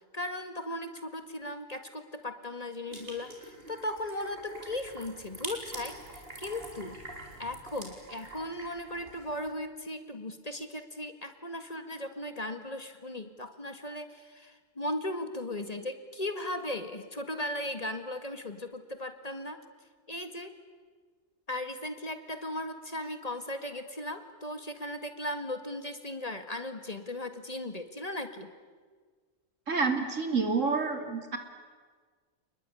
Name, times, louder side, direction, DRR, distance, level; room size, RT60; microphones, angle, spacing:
voice 1, 0.1-7.0 7.4-19.6 20.1-20.5 21.5-28.5, left 1 dB, 30° left, 8 dB, 2.0 m, -37 dB
sound 1, 2.9-9.5, right 1 dB, 50° right, 5.0 m, -45 dB
voice 2, 29.7-31.4, right 4 dB, 90° right, 6 dB, 3.3 m, -28 dB
29.5 x 20.5 x 9.9 m, 1.5 s
omnidirectional pair, 1.3 m